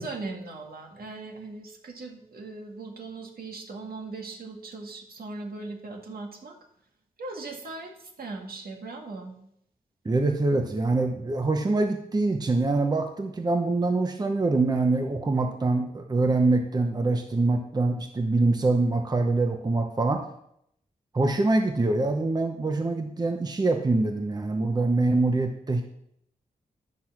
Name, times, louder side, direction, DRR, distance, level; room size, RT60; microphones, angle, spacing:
voice 1, 0.0-6.6 7.2-9.4, right 3 dB, 75° right, 2 dB, 1.9 m, -39 dB
voice 2, 10.0-20.2 21.1-25.8, right 2 dB, 25° right, 5 dB, 0.9 m, -24 dB
11.0 x 6.3 x 5.9 m, 0.73 s
wide cardioid pair, 160°, 16 cm